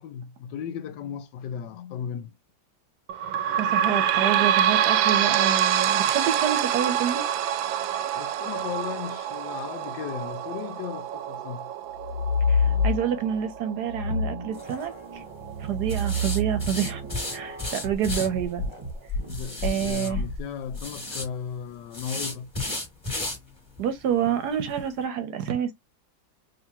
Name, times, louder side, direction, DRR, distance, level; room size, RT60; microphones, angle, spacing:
voice 1, 0.0-2.3 8.1-11.7 19.2-22.5, left 8 dB, 75° left, 1.2 m, -36 dB
sound 1, 3.1-16.3 16.8-16.9 17.2-17.3 18.1-18.2, right 10 dB, 90° right, 1.3 m, -26 dB
voice 2, 3.6-7.2 12.5-15.2 15.6-17.0 17.3-18.6 19.6-20.2 23.8-25.7, right 8 dB, 65° right, 1.1 m, -28 dB
sound 2, 12.0-13.4 13.9-20.8, left 3 dB, 20° right, 1.1 m, -29 dB
sound 3, 14.5-14.8 15.9-18.3 19.3-20.1 20.7-21.3 21.9-23.4 23.8-23.9 24.3-24.4 24.8-24.9, left 2 dB, 15° left, 2.1 m, -33 dB
5.1 x 2.8 x 2.8 m
omnidirectional pair, 2.1 m